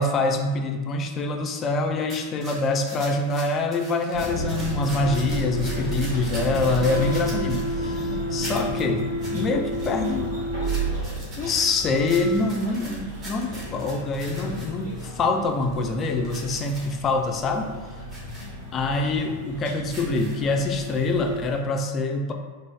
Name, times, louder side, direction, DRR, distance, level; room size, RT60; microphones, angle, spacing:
voice 1, 0.0-10.4 11.4-17.7 18.7-22.3, left 3 dB, 25° left, 4 dB, 0.4 m, -25 dB
sound 1, 2.1-8.0 8.4-8.8 9.2-9.4 9.7-10.3 10.6-15.1 15.6-16.9 17.3-17.6 18.1-18.5 18.9-19.0 19.8-20.6 21.1-21.2, right 1 dB, 25° right, 1.1 m, -42 dB
sound 2, 4.1-21.6, right 1 dB, 60° right, 1.5 m, -33 dB
sound 3, 6.7-10.9, equal, 85° right, 0.5 m, -31 dB
3.7 x 2.0 x 3.3 m, 1.3 s
figure-of-eight pair, 90°, 0 cm